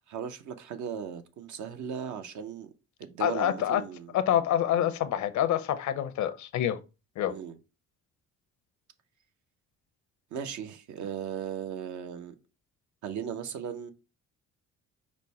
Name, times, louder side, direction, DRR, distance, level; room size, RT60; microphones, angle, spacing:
voice 1, 0.1-2.7 3.0-4.1 7.3-7.6 10.3-12.3 13.0-13.9, right 8 dB, 75° right, 0.7 m, -37 dB
voice 2, 3.2-3.8 4.1-6.8 7.2-7.3, left 11 dB, 70° left, 0.6 m, -27 dB
5.1 x 2.1 x 4.1 m
cardioid pair, 90°, 30 cm